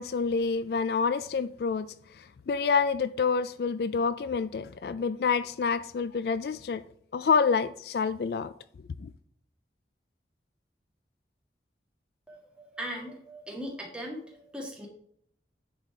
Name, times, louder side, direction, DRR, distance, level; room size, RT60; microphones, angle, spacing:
voice 1, 0.0-6.8 7.1-8.5 9.0-9.1, left 5 dB, 60° left, 0.3 m, -28 dB
voice 2, 12.3-14.9, equal, 5° right, 1.8 m, -39 dB
10.0 x 4.1 x 4.8 m
head